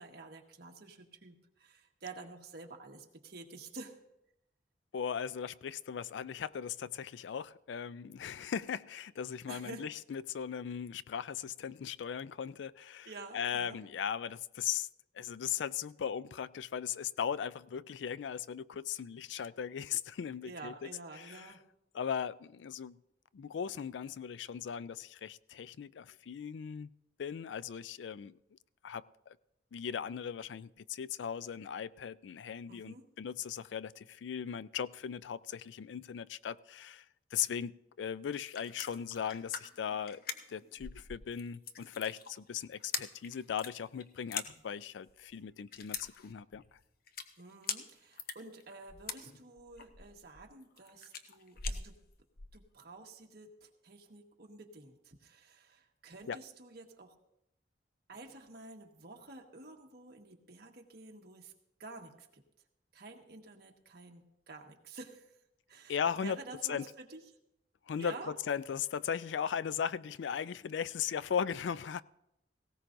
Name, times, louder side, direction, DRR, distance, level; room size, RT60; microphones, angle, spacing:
voice 1, 0.0-4.0 9.5-9.9 13.0-13.8 20.4-21.6 32.7-33.1 47.4-52.0 52.5-57.1 58.1-61.5 61.8-62.4 62.9-65.3 65.7-67.2 68.0-68.3, right 3 dB, 60° right, 1.5 m, -50 dB
voice 2, 4.9-14.9 15.1-20.9 21.2-21.5 21.9-23.0 23.3-26.9 27.2-28.3 28.8-29.4 29.7-37.0 37.3-40.2 40.5-46.6 56.3-56.4 65.9-66.4 66.7-66.9 67.9-72.0, left 8 dB, 75° left, 0.4 m, -38 dB
sound 1, 38.3-52.6, left 6 dB, 55° left, 0.8 m, -43 dB
18.5 x 17.0 x 2.6 m
head